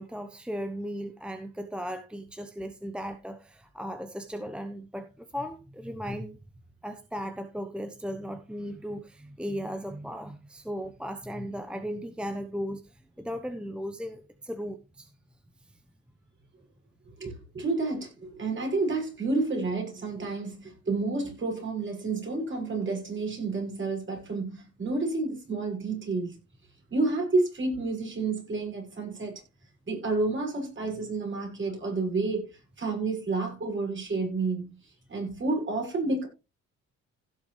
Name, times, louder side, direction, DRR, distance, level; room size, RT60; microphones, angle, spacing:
voice 1, 0.0-6.4 6.8-15.1, equal, 5° right, 1.0 m, -36 dB
voice 2, 17.2-26.4 26.9-29.4 29.8-34.8 35.1-36.3, right 3 dB, 40° right, 6.7 m, -30 dB
16.0 x 7.0 x 3.3 m
cardioid pair, 90°, 30 cm